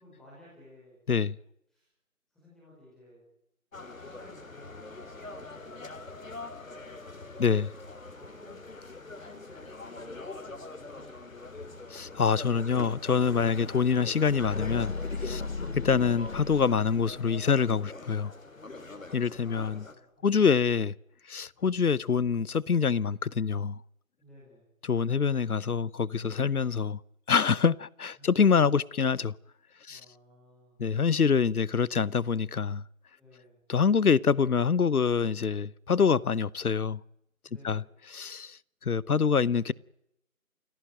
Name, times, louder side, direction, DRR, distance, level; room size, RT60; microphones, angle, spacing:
voice 1, 0.0-1.0 1.7-1.9 2.3-3.2 3.8-5.7 7.1-7.6 8.1-8.7 9.0-11.8 15.3-15.6 19.6-20.4 21.6-21.8 24.2-24.6 28.1-28.3 29.9-30.8 33.2-33.6 37.4-37.9, left 1 dB, ahead, 5.2 m, -56 dB
sound 1, 3.7-19.9, left 3 dB, 65° left, 4.1 m, -43 dB
voice 2, 11.9-14.9 15.2-15.4 15.8-18.3 19.1-19.9 20.2-20.9 21.3-23.8 24.9-27.0 27.3-29.3 29.9-30.0 30.8-32.8 33.7-37.0 37.6-37.8 38.1-39.7, left 6 dB, 85° left, 0.9 m, -25 dB
sound 2, 14.2-17.5, left 4 dB, 50° left, 1.1 m, -37 dB
29.0 x 17.0 x 9.2 m
figure-of-eight pair, 165°, 43 cm